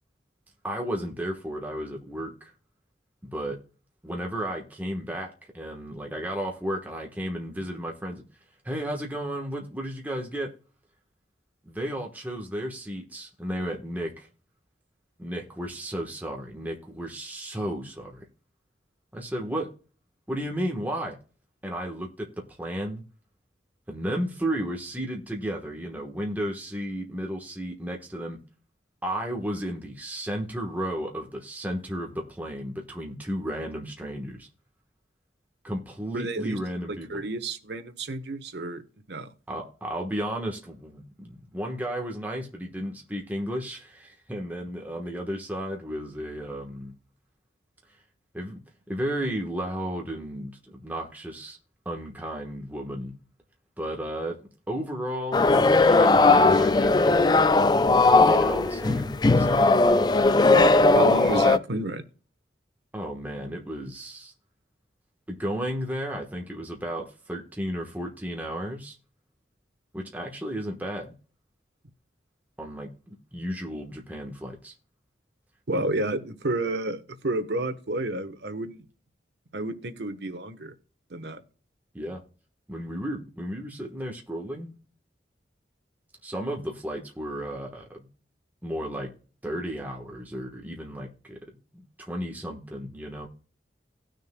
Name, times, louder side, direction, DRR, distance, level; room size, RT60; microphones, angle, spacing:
voice 1, 0.6-2.5 3.2-3.6 4.0-8.2 8.6-10.5 11.7-14.3 15.2-18.3 19.1-19.7 20.3-21.2 21.6-23.0 23.9-28.4 29.0-34.5 35.6-37.2 39.5-46.9 48.3-48.6 48.9-51.6 51.8-53.2 53.8-54.4 54.7-57.2 58.0-60.0 62.9-64.3 65.3-69.0 69.9-71.1 72.6-74.7 81.9-82.2 82.7-84.7 86.2-88.1 88.6-89.1 89.4-91.4 91.7-93.3, equal, 10° right, 1.1 m, -33 dB
voice 2, 36.1-36.6 36.9-38.8 39.1-39.3 60.5-62.0 75.7-78.9 79.5-80.7 81.1-81.4, right 2 dB, 75° right, 1.1 m, -30 dB
sound 1, 55.3-61.6, left 3 dB, 25° left, 0.3 m, -18 dB
18.0 x 6.4 x 2.2 m
head